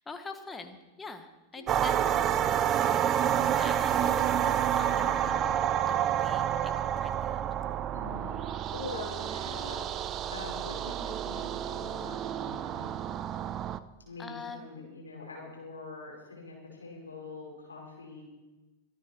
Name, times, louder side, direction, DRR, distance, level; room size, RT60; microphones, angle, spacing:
voice 1, 0.0-2.3 3.5-5.5 5.9-7.4 14.2-14.7, left 4 dB, 15° left, 8 dB, 1.4 m, -45 dB
voice 2, 1.5-2.6 4.8-5.5 7.9-9.8 10.3-13.0 14.0-18.2, left 3 dB, 75° left, -3 dB, 5.3 m, -44 dB
sound 1, 1.7-13.8, right 10 dB, 30° right, 0.5 m, -29 dB
24.5 x 9.6 x 4.6 m, 1.1 s
figure-of-eight pair, 90°, 0 cm